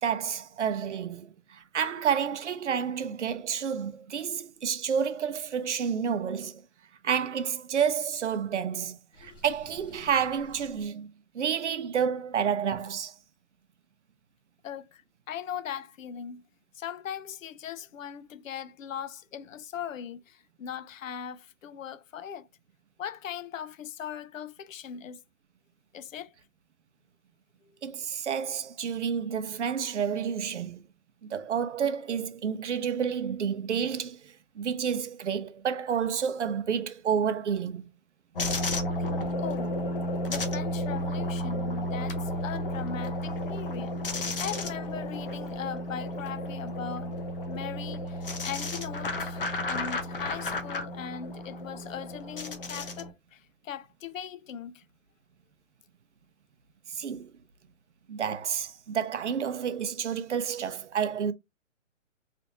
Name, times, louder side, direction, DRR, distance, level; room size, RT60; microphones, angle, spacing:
voice 1, 0.0-6.6 7.0-11.1 11.3-13.1 27.8-30.8 31.2-37.8 56.9-57.3 58.1-61.3, right 7 dB, 65° right, 0.6 m, -30 dB
Water / Sink (filling or washing), 9.1-10.9, left 1 dB, 20° left, 1.4 m, -52 dB
voice 2, 14.6-15.0 15.3-16.4 16.8-22.5 23.0-25.2 25.9-26.3 39.4-39.7 40.3-43.9 44.4-47.1 47.5-54.8, left 8 dB, 90° left, 0.5 m, -39 dB
sound 1, 38.4-53.1, left 1 dB, 45° left, 0.7 m, -32 dB
3.3 x 2.5 x 2.8 m
hypercardioid pair, 175°, 38 cm